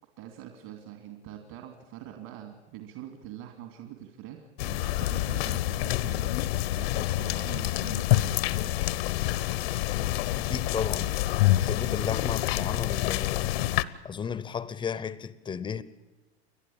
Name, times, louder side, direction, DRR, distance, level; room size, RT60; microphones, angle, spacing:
voice 1, 0.2-6.3 6.7-8.5, right 11 dB, 55° right, 2.7 m, -44 dB
sound 1, 4.6-13.8, left 16 dB, 65° left, 0.9 m, -27 dB
voice 2, 10.4-11.1 11.6-13.5 14.0-15.8, left 7 dB, 15° left, 0.7 m, -33 dB
29.5 x 11.5 x 8.7 m
supercardioid pair, 130°, 33 cm